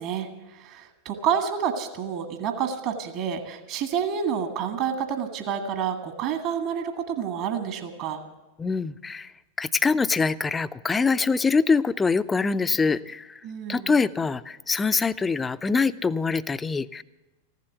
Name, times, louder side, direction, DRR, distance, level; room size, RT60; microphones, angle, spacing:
voice 1, 0.0-8.2 13.4-13.9, right 7 dB, 45° right, 6 dB, 1.6 m, -29 dB
voice 2, 8.6-9.3 9.6-13.4 13.7-17.0, left 4 dB, 15° left, 14 dB, 0.5 m, -24 dB
15.0 x 12.0 x 7.9 m, 1.1 s
figure-of-eight pair, 90°, 0 cm